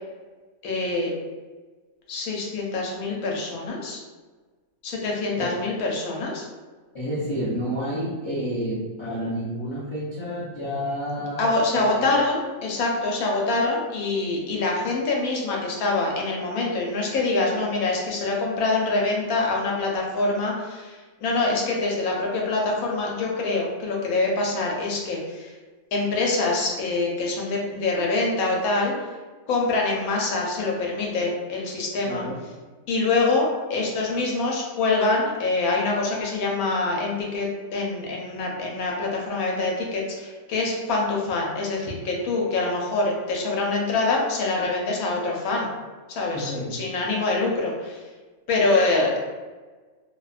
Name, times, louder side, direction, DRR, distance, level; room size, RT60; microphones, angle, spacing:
voice 1, 0.6-1.1 2.1-4.0 4.8-6.4 11.4-25.5 25.9-28.9 29.5-32.3 32.9-45.7 46.1-48.0 48.5-49.2, left 3 dB, 85° left, -1 dB, 1.1 m, -25 dB
voice 2, 6.9-12.1 32.0-32.4 46.3-46.8, equal, 40° left, -12 dB, 0.4 m, -30 dB
2.7 x 2.1 x 2.4 m, 1.3 s
omnidirectional pair, 1.4 m